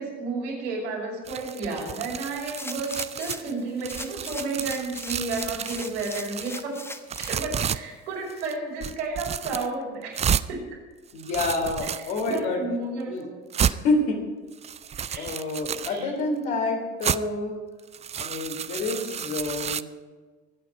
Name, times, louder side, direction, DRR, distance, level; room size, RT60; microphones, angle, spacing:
voice 1, 0.0-6.8 7.2-10.2 10.5-10.6 11.8-11.9 12.2-13.3 15.0-15.3 15.8-16.1, right 3 dB, 75° right, -3 dB, 5.2 m, -32 dB
sound 1, 1.3-3.5 3.8-6.6 7.1-7.8 8.3-8.5 8.8-9.7 10.1-10.5 11.1-12.4 13.0-13.1 13.5-13.8 14.5-16.0 17.0-17.2 17.8-19.8, right 8 dB, 20° right, 0.4 m, -31 dB
sound 2, 2.6-3.5 3.9-7.4 7.9-8.0, left 1 dB, 5° left, 1.0 m, -39 dB
voice 2, 11.1-12.6 13.1-13.3 13.7-14.2 15.1-17.6 18.2-19.9, left 3 dB, 65° left, 1 dB, 3.7 m, -28 dB
23.5 x 8.5 x 4.8 m, 1.4 s
figure-of-eight pair, 60°, 35 cm